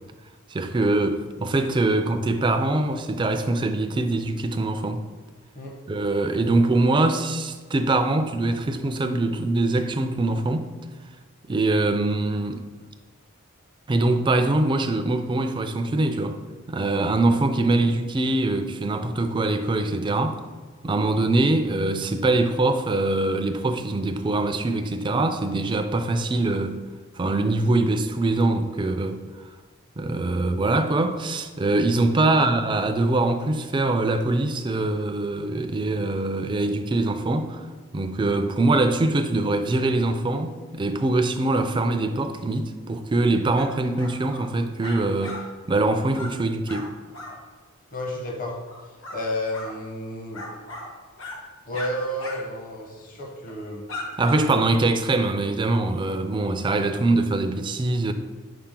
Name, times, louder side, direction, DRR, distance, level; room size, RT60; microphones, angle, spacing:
voice 1, 0.5-5.0 5.9-10.7 11.5-12.6 13.9-16.4 16.7-20.4 20.8-26.8 27.2-29.2 30.0-37.6 37.9-45.4 45.7-46.9 54.2-58.1, right 2 dB, 25° right, 0.4 m, -23 dB
sound 1, 43.6-43.7 43.9-44.4 44.8-45.4 45.7-45.9 46.1-46.3 46.7-46.9 47.1-47.3 48.7-49.2 49.5-49.7 50.3-50.9 51.2-51.4 51.7-51.9 52.2-52.4 52.7-52.8 53.5-53.6 53.9-54.4, left 2 dB, 65° left, 1.2 m, -37 dB
voice 2, 47.9-48.5 49.1-50.5 51.7-53.8, left 1 dB, 40° left, 0.9 m, -31 dB
5.8 x 4.7 x 3.7 m
head